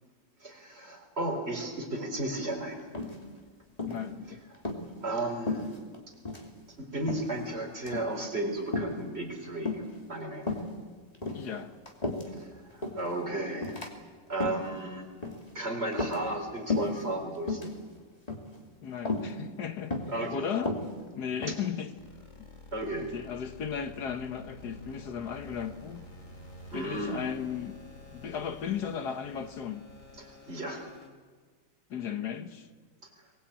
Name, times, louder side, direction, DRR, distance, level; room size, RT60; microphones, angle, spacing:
voice 1, 0.4-2.9 4.3-4.6 5.0-5.7 6.8-9.8 10.1-10.5 12.3-13.8 14.3-15.1 15.5-17.7 20.1-20.4 21.5-21.6 22.7-23.1 26.7-27.3 30.2-30.9, right 1 dB, 35° right, 1 dB, 4.4 m, -34 dB
sound 1, 2.9-3.4 3.8-4.1 4.5-4.8 5.5-6.0 6.2-6.5 7.1-7.4 7.8-8.1 8.7-9.0 9.7-10.0 10.4-10.7 11.1-12.4 12.8-13.1 13.6-13.9 14.3-14.7 15.2-15.5 15.9-16.4 16.7-17.0 17.4-17.7 18.3-18.6 19.1-19.3 19.9-20.2 20.6-21.7, left 3 dB, 20° left, 2.8 m, -33 dB
voice 2, 3.9-4.4 11.3-11.7 18.8-19.9 20.3-20.7 21.2-21.9 23.1-26.1 26.7-27.8 28.1-29.8 31.9-32.7, left 7 dB, 65° left, 8 dB, 1.8 m, -35 dB
sound 2, 22.0-31.1, left 2 dB, 45° left, 3.4 m, -50 dB
22.5 x 20.5 x 8.8 m, 1.5 s
omnidirectional pair, 1.9 m